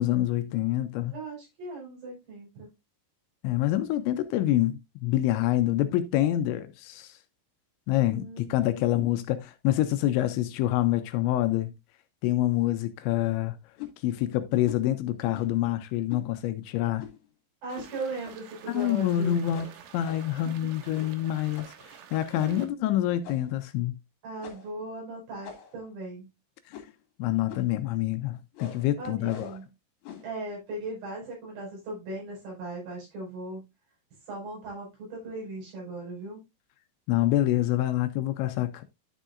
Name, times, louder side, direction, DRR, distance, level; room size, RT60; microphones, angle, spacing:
voice 1, 0.0-1.1 3.4-7.2 7.9-11.7 12.2-13.6 14.0-17.0 18.7-19.7 19.9-21.7 22.1-24.0 27.2-29.5 37.1-38.8, left 13 dB, 85° left, 2.8 m, -26 dB
voice 2, 1.1-2.7 7.9-9.1 17.6-19.4 20.4-20.7 22.3-22.9 24.2-26.3 29.0-29.7 30.2-33.7 34.3-36.4, right 2 dB, 60° right, 7.1 m, -38 dB
sound 1, 13.8-14.0 14.6-14.9 15.3-15.6 16.1-16.3 17.0-17.3 17.7-17.9 18.2-18.4 18.8-19.1 19.5-20.4 20.9-21.2 21.6-21.8 22.4-22.7 23.2-23.6 24.4-24.8 25.4-25.9 26.7-27.0 27.5-27.8 28.5-28.9 29.3-29.6 30.0-30.3, left 8 dB, 65° left, 3.8 m, -44 dB
sound 2, 17.7-22.7, right 9 dB, 85° right, 3.7 m, -49 dB
11.5 x 6.4 x 2.5 m
omnidirectional pair, 5.4 m